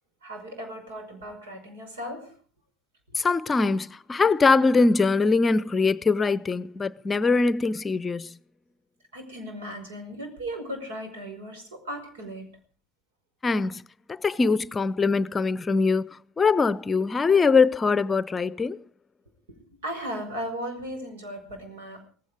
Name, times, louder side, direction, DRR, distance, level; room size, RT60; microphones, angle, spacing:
voice 1, 0.2-2.3 9.1-12.6 19.6-22.0, equal, 75° right, 5.3 m, -36 dB
voice 2, 3.2-8.3 13.4-13.8 14.1-16.0 16.4-18.8, left 4 dB, 25° left, 0.7 m, -22 dB
18.0 x 16.0 x 4.9 m
figure-of-eight pair, 60°, 0 cm